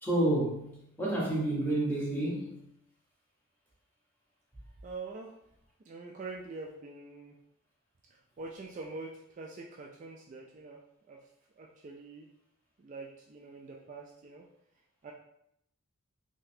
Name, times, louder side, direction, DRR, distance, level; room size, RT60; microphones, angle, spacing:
voice 1, 0.0-2.6, right 1 dB, 10° left, -5 dB, 0.9 m, -30 dB
voice 2, 4.8-5.3 5.9-7.3 8.4-10.8 11.1-11.2 11.6-12.3 12.8-14.5 15.0-15.1, right 3 dB, 35° right, -1 dB, 0.3 m, -44 dB
3.8 x 2.7 x 2.7 m, 0.76 s
head